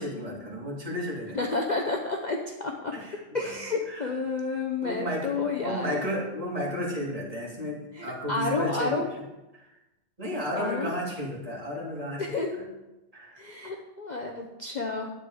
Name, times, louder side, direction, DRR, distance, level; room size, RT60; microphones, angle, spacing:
voice 1, 0.0-1.4 2.9-3.5 3.9-4.1 4.8-9.0 9.5-9.7 10.2-12.7 13.1-13.4, equal, 25° right, -4 dB, 2.9 m, -33 dB
voice 2, 1.3-2.9 3.3-6.0 7.9-9.1 10.6-10.9 12.2-12.6 13.4-15.1, left 3 dB, 40° left, 1 dB, 0.9 m, -30 dB
10.0 x 8.5 x 4.7 m, 1.0 s
omnidirectional pair, 1.4 m